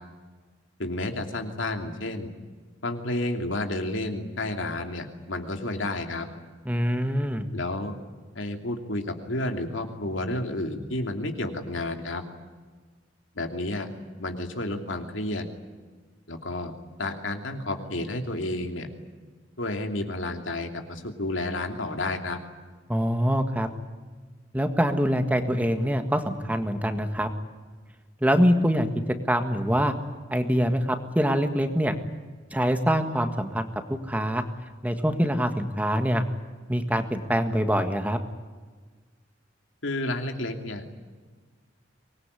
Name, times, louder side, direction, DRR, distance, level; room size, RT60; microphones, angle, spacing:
voice 1, 0.8-2.3 2.8-6.3 7.5-8.0 8.3-12.2 13.3-13.9 14.2-15.4 16.3-16.7 17.0-18.9 19.6-22.4 39.8-40.8, left 2 dB, 80° left, 4 dB, 2.9 m, -31 dB
voice 2, 6.7-7.5 22.9-23.7 24.5-27.3 28.2-28.9 29.3-29.9 30.3-31.9 32.5-34.4 34.8-36.2 36.7-38.2, equal, 10° right, 7 dB, 1.6 m, -24 dB
25.0 x 20.5 x 9.8 m, 1.5 s
head